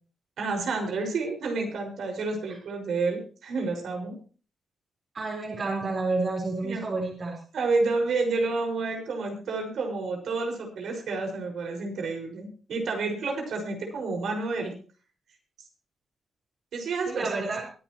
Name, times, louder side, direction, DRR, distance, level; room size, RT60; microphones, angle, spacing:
voice 1, 0.4-4.2 6.6-6.8 7.5-14.7 16.7-17.4, right 3 dB, 75° right, 2 dB, 5.7 m, -29 dB
voice 2, 5.1-7.4 17.1-17.6, right 3 dB, 45° right, -2 dB, 4.6 m, -29 dB
23.5 x 11.0 x 3.1 m, 0.38 s
cardioid pair, 115°, 0 cm